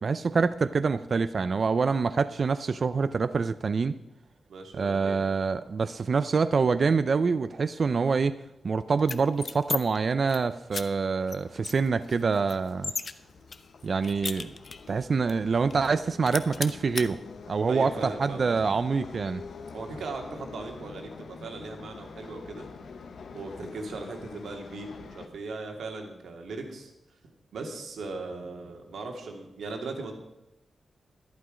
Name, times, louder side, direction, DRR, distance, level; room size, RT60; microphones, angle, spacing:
voice 1, 0.0-3.9 4.8-8.3 8.6-12.9 13.8-14.5 14.9-17.2 17.5-19.4, right 4 dB, 45° right, 13 dB, 0.4 m, -26 dB
voice 2, 4.5-5.2 17.7-18.6 19.7-22.7 23.3-26.9 27.5-30.1, right 3 dB, 85° right, 3 dB, 2.0 m, -38 dB
sound 1, 9.0-9.8 10.1-10.4 10.7-10.8 11.3-11.4 11.6-13.1 13.5-14.9 15.3-15.4 15.7-16.0 16.3-17.1, left 4 dB, 45° left, 0.5 m, -34 dB
sound 2, 11.2-25.3, left 5 dB, 70° left, 0.9 m, -46 dB
11.5 x 11.0 x 5.0 m, 0.92 s
wide cardioid pair, 125°, 0 cm